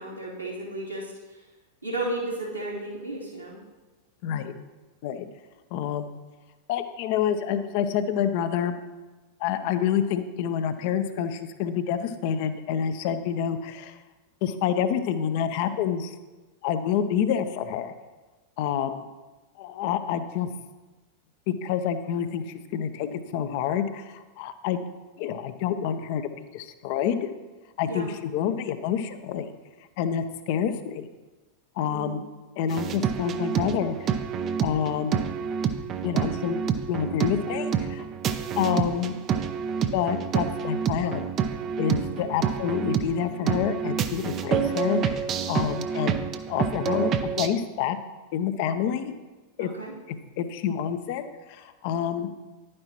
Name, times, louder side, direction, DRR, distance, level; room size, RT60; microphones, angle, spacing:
voice 1, 0.0-1.4 1.8-3.6 27.9-28.1 31.8-32.2 42.1-42.4 49.6-49.9, right 2 dB, 90° right, -8 dB, 3.0 m, -34 dB
voice 2, 4.2-4.5 5.0-5.3 5.7-6.2 6.7-8.8 9.4-14.0 14.4-16.1 16.6-17.9 18.6-19.0 19.6-20.5 21.5-24.8 25.2-27.3 27.8-29.5 30.0-31.1 31.8-32.2 32.6-34.1 34.6-35.2 36.0-36.6 36.9-38.1 38.6-39.2 39.9-41.3 41.8-48.0 48.3-49.1 49.6-49.7 50.1-52.3, left 8 dB, 45° left, 10 dB, 0.7 m, -28 dB
sound 1, 32.7-47.5, right 7 dB, 30° right, 0.6 m, -28 dB
11.0 x 9.5 x 3.0 m, 1.2 s
figure-of-eight pair, 90°, 0 cm